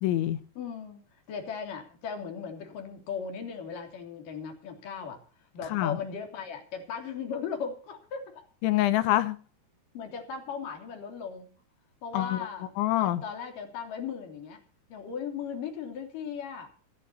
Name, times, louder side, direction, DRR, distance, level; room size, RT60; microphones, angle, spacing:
voice 1, 0.0-0.4 5.7-6.0 8.6-9.4 12.1-12.4 12.8-13.2, left 14 dB, 90° left, 3.5 m, -25 dB
voice 2, 0.6-8.5 9.9-11.5 12.0-12.7 12.9-14.6 14.9-16.7, left 6 dB, 50° left, 4.3 m, -37 dB
26.0 x 11.5 x 2.8 m
omnidirectional pair, 5.2 m